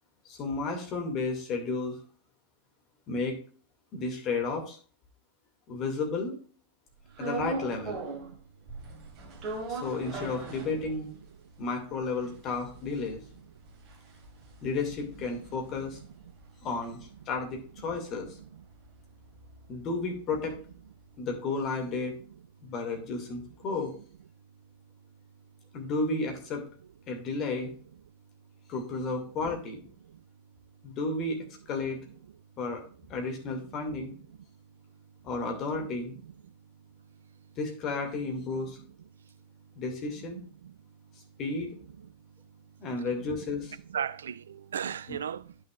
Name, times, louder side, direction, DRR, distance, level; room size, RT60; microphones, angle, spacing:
voice 1, 0.3-2.0 3.1-3.4 3.9-4.8 5.7-6.4 7.2-8.0 9.7-11.1 11.6-13.2 14.6-16.0 16.6-17.0 17.3-18.3 19.7-20.6 21.2-22.1 22.6-23.9 25.7-26.6 27.1-27.7 28.7-29.9 30.8-32.0 32.6-32.8 33.1-34.1 35.2-36.1 37.6-38.8 39.8-40.4 41.4-41.7 42.8-43.8 45.1-45.2, left 3 dB, 35° left, 2.2 m, -32 dB
sound 1, 7.2-8.4 8.7-11.3 11.6-11.7 11.9-16.4 16.8-20.8, right 3 dB, 40° right, 1.7 m, -40 dB
voice 2, 8.0-8.4 12.2-12.3 15.8-15.9 16.2-16.3 18.4-18.6 30.0-30.2 33.7-33.8 36.1-36.5 40.3-40.4 40.6-40.7 43.9-45.6, right 8 dB, 65° right, 0.4 m, -38 dB
10.0 x 6.3 x 2.4 m
figure-of-eight pair, 90°, 0 cm